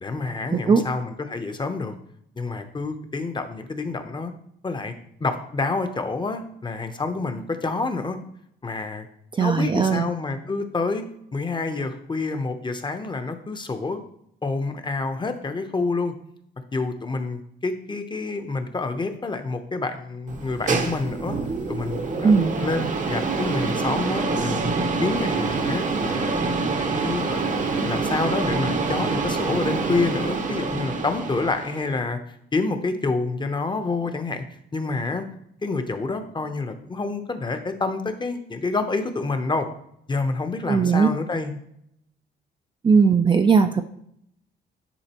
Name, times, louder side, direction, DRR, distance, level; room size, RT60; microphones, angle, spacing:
voice 1, 0.0-1.9 2.4-4.3 4.6-4.9 5.2-8.2 8.6-9.0 9.4-11.0 11.3-14.0 14.4-16.1 16.7-21.4 21.7-24.7 25.0-26.3 26.8-32.2 32.5-34.4 34.7-35.3 35.6-39.7 40.1-41.6, left 3 dB, 25° left, 7 dB, 0.8 m, -28 dB
voice 2, 0.5-0.8 9.3-10.1 22.2-22.5 40.7-41.1 42.8-43.8, right 5 dB, 25° right, 6 dB, 0.4 m, -18 dB
sound 1, 20.3-31.9, right 4 dB, 40° right, 0.8 m, -26 dB
9.9 x 3.9 x 2.9 m, 0.74 s
cardioid pair, 90°, 20 cm